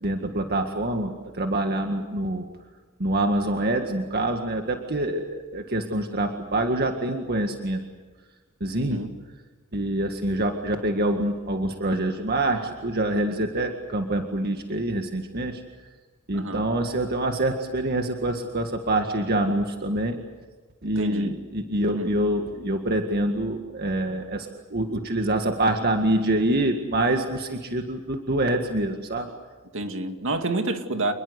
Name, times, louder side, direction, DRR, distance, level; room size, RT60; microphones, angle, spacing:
voice 1, 0.0-2.5 3.0-7.8 8.6-9.1 9.7-15.6 16.3-20.2 20.8-29.3, right 1 dB, 50° right, 4 dB, 1.9 m, -26 dB
voice 2, 8.8-9.1 16.3-16.6 21.0-21.4 21.9-22.1 29.7-31.1, right 2 dB, 65° right, 6 dB, 2.4 m, -28 dB
27.5 x 21.5 x 8.2 m, 1.3 s
head